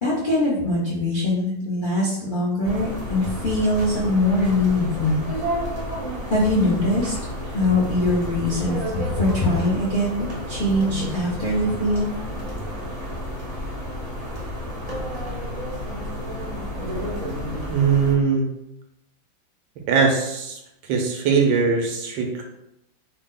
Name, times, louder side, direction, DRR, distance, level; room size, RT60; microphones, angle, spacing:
voice 1, 0.0-5.3 6.3-7.1 7.5-12.1, left 1 dB, 70° left, -7 dB, 0.4 m, -22 dB
sound 1, 2.6-18.1, equal, 55° right, 0.4 m, -31 dB
voice 2, 17.7-18.5 19.9-20.6 20.9-22.4, right 5 dB, 85° right, 2 dB, 1.4 m, -20 dB
3.9 x 2.1 x 3.7 m, 0.84 s
omnidirectional pair, 2.0 m